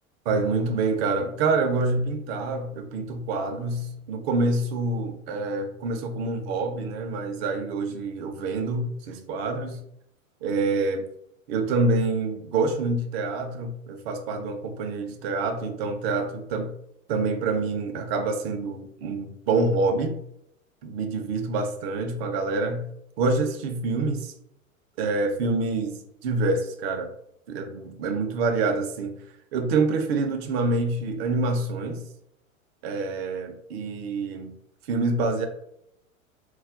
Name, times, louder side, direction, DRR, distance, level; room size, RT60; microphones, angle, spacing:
voice 1, 0.3-9.8 10.4-11.1 11.5-16.7 17.1-20.2 20.8-22.8 23.2-24.3 25.0-27.1 27.5-29.2 29.5-32.0 32.8-34.5 34.9-35.5, right 3 dB, 45° right, 6 dB, 0.6 m, -26 dB
2.4 x 2.1 x 3.5 m, 0.77 s
figure-of-eight pair, 95°, 42 cm